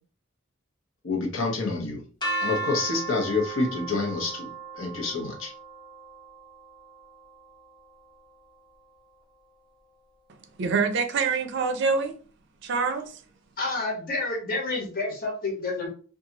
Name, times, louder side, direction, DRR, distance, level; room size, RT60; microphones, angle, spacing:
voice 1, 1.0-2.0 2.4-4.5 4.8-5.5, left 3 dB, 80° left, 0.8 m, -28 dB
sound 1, 2.2-8.1, right 3 dB, 20° left, 0.8 m, -36 dB
voice 2, 10.6-12.1 12.6-13.2, right 5 dB, 60° right, 0.4 m, -25 dB
voice 3, 13.6-15.9, left 3 dB, 45° left, 1.0 m, -29 dB
2.6 x 2.3 x 2.8 m
head